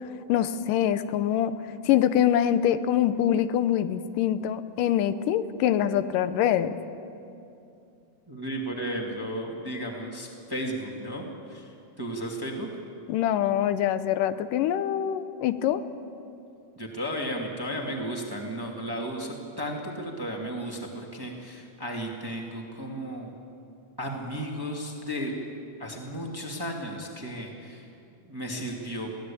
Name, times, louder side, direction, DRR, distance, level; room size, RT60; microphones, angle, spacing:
voice 1, 0.3-1.5 1.9-6.8 13.1-15.8, left 10 dB, 85° left, 12 dB, 2.4 m, -24 dB
voice 2, 8.3-12.7 16.7-23.3 24.0-25.3 25.8-27.9 28.2-29.1, equal, 10° right, 0 dB, 1.6 m, -34 dB
22.0 x 16.5 x 8.5 m, 2.6 s
omnidirectional pair, 3.7 m